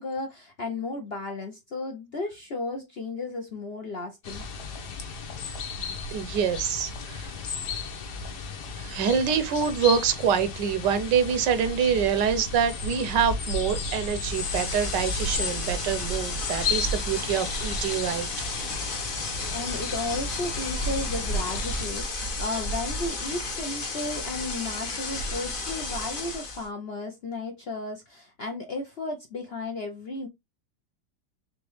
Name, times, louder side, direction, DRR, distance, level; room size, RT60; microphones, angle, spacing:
voice 1, 0.0-4.5 19.5-30.3, left 2 dB, 55° left, 0.7 m, -34 dB
sound 1, 4.2-21.9, left 3 dB, 70° left, 1.5 m, -34 dB
voice 2, 6.1-7.3 8.8-18.5, right 7 dB, 80° right, 1.4 m, -26 dB
sound 2, 14.1-26.7, left 2 dB, 40° left, 0.9 m, -33 dB
4.0 x 3.4 x 3.1 m
omnidirectional pair, 1.8 m